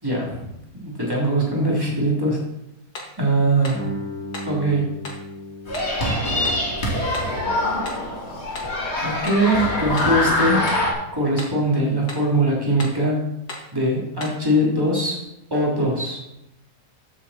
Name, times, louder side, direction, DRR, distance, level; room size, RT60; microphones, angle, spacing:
voice 1, 0.0-0.5 0.8-2.4 3.2-3.9 4.5-4.9 9.0-10.7 11.1-13.3 13.7-15.2 15.5-16.2, right 1 dB, 15° right, -4 dB, 3.5 m, -21 dB
sound 1, 2.9-3.2 3.6-3.9 4.3-4.6 5.0-5.3 5.7-6.0 6.4-6.7 7.1-7.4 7.9-8.1 8.5-8.8 9.3-9.5 10.0-10.2 10.7-10.9 11.4-11.6 12.1-12.3 12.8-13.0 13.5-13.7 14.2-14.4, left 2 dB, 65° left, 2.6 m, -36 dB
Guitar, 3.7-9.1, equal, 5° left, 5.5 m, -37 dB
sound 2, 5.7-10.9, left 1 dB, 40° left, 3.0 m, -24 dB
14.5 x 8.0 x 4.4 m, 0.86 s
omnidirectional pair, 1.8 m